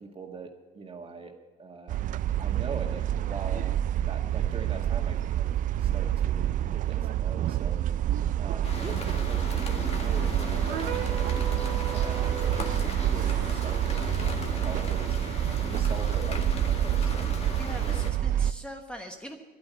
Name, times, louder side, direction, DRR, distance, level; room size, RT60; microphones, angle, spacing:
voice 1, 0.0-1.3 1.6-2.0 2.4-3.7 4.0-5.5 5.8-7.8 8.4-11.4 11.9-18.1, right 4 dB, 30° right, 3 dB, 2.0 m, -42 dB
sound 1, 1.9-18.5, right 11 dB, 50° right, 0.4 m, -28 dB
sound 2, 8.6-18.1, left 3 dB, 35° left, 1.9 m, -37 dB
sound 3, 10.7-12.9, right 9 dB, 85° right, 1.2 m, -36 dB
voice 2, 17.5-19.4, equal, 5° left, 3 dB, 1.2 m, -41 dB
11.5 x 9.5 x 9.2 m, 1.3 s
cardioid pair, 110°, 17 cm